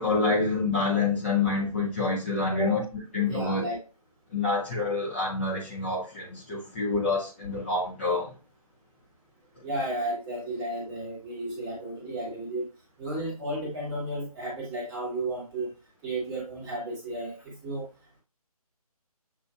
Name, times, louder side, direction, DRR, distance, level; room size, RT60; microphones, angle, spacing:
voice 1, 0.0-2.8 3.1-3.6 4.3-8.3, left 3 dB, 20° left, 0.7 m, -27 dB
voice 2, 3.3-3.8 9.6-12.7 13.0-15.7 16.0-17.9, right 1 dB, 10° right, 1.2 m, -33 dB
7.0 x 2.5 x 2.3 m
figure-of-eight pair, 150°, 19 cm